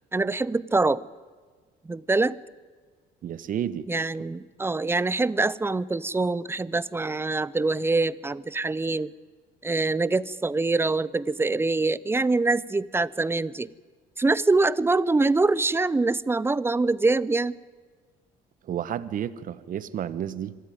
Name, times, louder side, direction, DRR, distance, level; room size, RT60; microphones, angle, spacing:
voice 1, 0.1-1.0 1.9-2.4 3.9-9.1 9.6-13.7 14.2-17.5, right 3 dB, 15° right, 20 dB, 0.6 m, -24 dB
voice 2, 3.2-3.9 18.7-20.6, right 10 dB, 55° right, 16 dB, 1.1 m, -31 dB
25.0 x 13.5 x 9.3 m, 1.5 s
cardioid pair, 110°, 17 cm